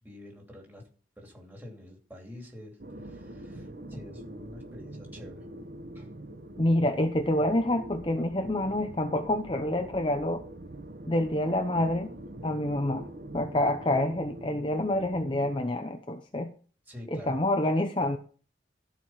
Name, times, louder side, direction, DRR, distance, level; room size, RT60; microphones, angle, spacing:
voice 1, 0.0-0.8 1.2-5.5 5.9-6.1 16.9-17.4, left 1 dB, 10° right, 0 dB, 2.8 m, -47 dB
sound 1, 2.8-15.5, right 1 dB, 55° right, 1.1 m, -44 dB
voice 2, 6.6-10.4 11.1-12.1 12.4-13.1 13.3-16.5 17.1-18.2, left 1 dB, 30° left, 6 dB, 0.7 m, -27 dB
14.5 x 4.9 x 5.6 m, 0.40 s
head